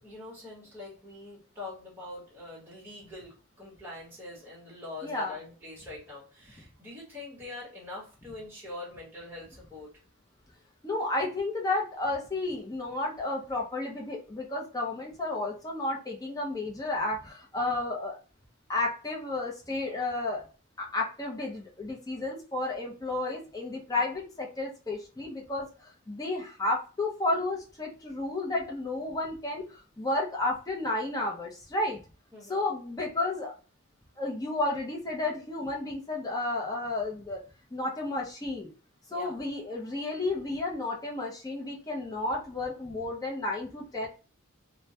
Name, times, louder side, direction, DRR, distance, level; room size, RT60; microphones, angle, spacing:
voice 1, 0.0-9.9 24.0-24.2 32.3-32.6 39.1-39.4, left 2 dB, 10° right, -6 dB, 0.9 m, -44 dB
voice 2, 5.0-5.4 10.8-18.2 18.7-20.4 20.8-32.0 32.5-33.5 34.2-37.4 37.7-38.7 39.1-44.1, left 2 dB, 15° left, -1 dB, 0.5 m, -32 dB
2.1 x 2.1 x 2.7 m, 0.34 s
head